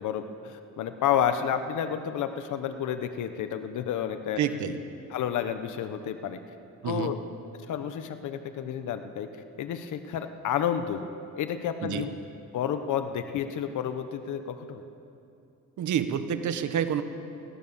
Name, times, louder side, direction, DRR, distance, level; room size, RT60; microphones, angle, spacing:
voice 1, 0.0-4.4 5.1-6.4 6.8-7.1 7.7-9.3 9.6-11.0 11.4-12.1 12.5-14.8, left 9 dB, 80° left, 8 dB, 1.2 m, -30 dB
voice 2, 4.4-4.8 6.8-7.1 11.8-12.0 15.8-17.0, right 8 dB, 75° right, 9 dB, 1.6 m, -28 dB
23.5 x 17.0 x 7.2 m, 2.7 s
cardioid pair, 90°, 30 cm